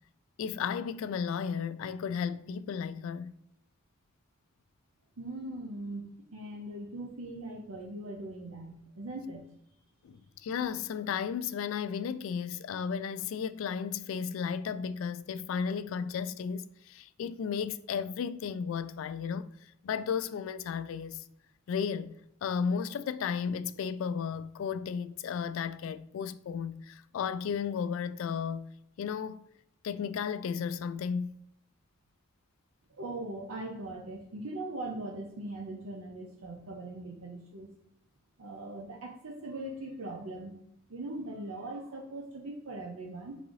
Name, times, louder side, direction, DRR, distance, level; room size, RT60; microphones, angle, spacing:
voice 1, 0.4-3.4 10.0-21.2 21.7-22.1 22.4-28.7 29.0-29.5 29.8-31.4, left 6 dB, 70° left, 0.3 m, -34 dB
voice 2, 5.2-9.4 33.0-37.7 38.4-40.6 40.9-43.4, right 2 dB, 90° right, 0.7 m, -40 dB
4.0 x 3.8 x 3.0 m
head